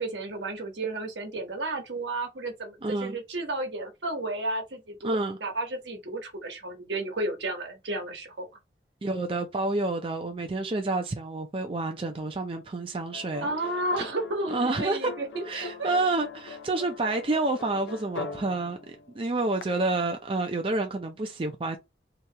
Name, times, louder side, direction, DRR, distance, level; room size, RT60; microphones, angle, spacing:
voice 1, 0.0-8.5 13.4-15.9, right 2 dB, 80° right, 1.1 m, -32 dB
voice 2, 2.8-3.2 5.0-5.4 9.0-13.5 14.5-15.1 15.5-21.8, right 2 dB, 30° right, 0.4 m, -29 dB
sound 1, 13.1-19.6, left 4 dB, 85° left, 0.5 m, -41 dB
2.9 x 2.8 x 3.3 m
head